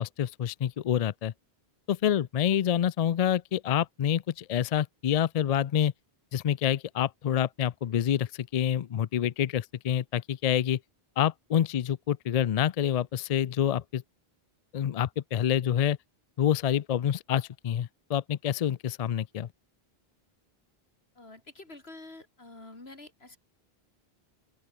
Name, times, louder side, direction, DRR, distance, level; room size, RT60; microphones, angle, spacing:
voice 1, 0.0-1.3 1.9-5.9 6.3-10.8 11.2-14.0 14.7-16.0 16.4-19.5, left 10 dB, 55° left, 0.5 m, -27 dB
voice 2, 21.2-23.4, left 2 dB, 80° left, 4.2 m, -48 dB
open air
omnidirectional pair, 1.0 m